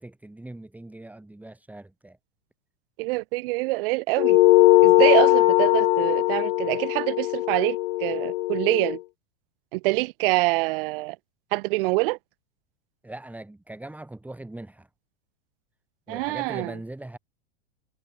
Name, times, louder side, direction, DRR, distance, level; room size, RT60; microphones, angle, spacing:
voice 1, 0.0-2.2 13.0-14.9 16.1-17.2, right 2 dB, 5° right, 3.8 m, -40 dB
voice 2, 3.0-4.4 4.8-9.0 9.7-11.2 11.5-12.2 16.1-16.7, right 24 dB, 60° right, 2.1 m, -25 dB
sound 1, 4.2-9.0, left 18 dB, 70° left, 1.1 m, -20 dB
hypercardioid pair, 115°, 31 cm